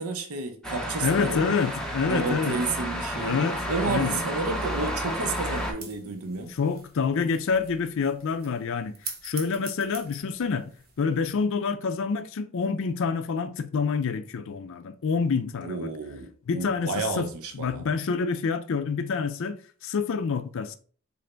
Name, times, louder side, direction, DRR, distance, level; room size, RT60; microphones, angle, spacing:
voice 1, 0.0-1.6 2.1-3.4 3.7-6.5 15.6-17.8, right 3 dB, 75° right, 0.7 m, -31 dB
sound 1, 0.6-5.7, equal, 5° left, 0.5 m, -31 dB
voice 2, 1.0-2.6 3.2-4.2 6.6-10.7 11.0-15.9 16.5-20.7, left 5 dB, 60° left, 0.4 m, -27 dB
sound 2, 3.3-11.5, right 5 dB, 45° right, 0.8 m, -46 dB
3.8 x 2.6 x 3.3 m
head